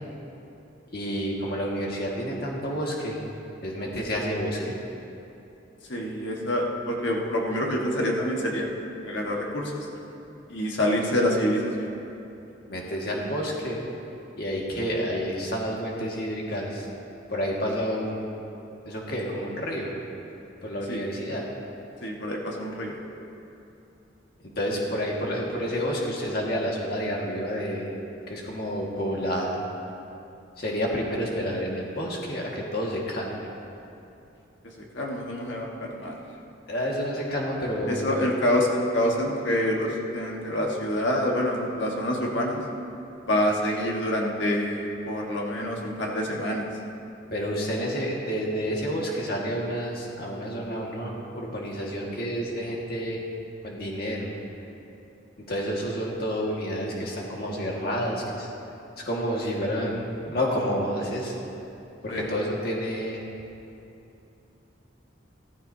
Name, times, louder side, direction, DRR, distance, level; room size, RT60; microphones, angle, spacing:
voice 1, 0.9-3.2 3.6-4.7 12.7-13.8 14.4-16.9 17.3-18.4 18.8-19.9 20.6-21.5 24.6-27.9 28.3-29.6 30.6-33.5 36.7-38.1 47.3-53.2 53.6-54.4 55.5-58.5 59.0-61.4 62.0-63.2, equal, 50° left, -2 dB, 1.8 m, -29 dB
voice 2, 5.9-8.7 9.0-9.9 10.5-11.9 20.9-21.0 22.0-23.0 34.9-36.2 37.9-42.6 43.3-46.6 62.1-62.3, left 1 dB, 70° left, -1 dB, 1.5 m, -26 dB
15.0 x 14.5 x 2.8 m, 2.8 s
head